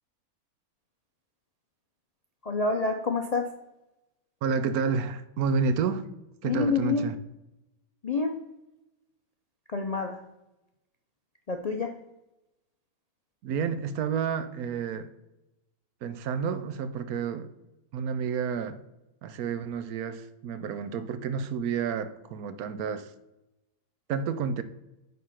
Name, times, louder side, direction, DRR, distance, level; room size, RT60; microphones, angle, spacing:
voice 1, 2.4-3.5 6.4-7.1 8.0-8.4 9.7-10.2 11.5-11.9, left 4 dB, 55° left, 4 dB, 0.4 m, -27 dB
voice 2, 4.4-6.1 6.4-7.2 13.4-15.1 16.0-17.5 17.9-18.8 19.2-23.1 24.1-24.6, right 6 dB, 85° right, 12 dB, 1.2 m, -30 dB
9.3 x 3.7 x 5.7 m, 0.95 s
omnidirectional pair, 1.5 m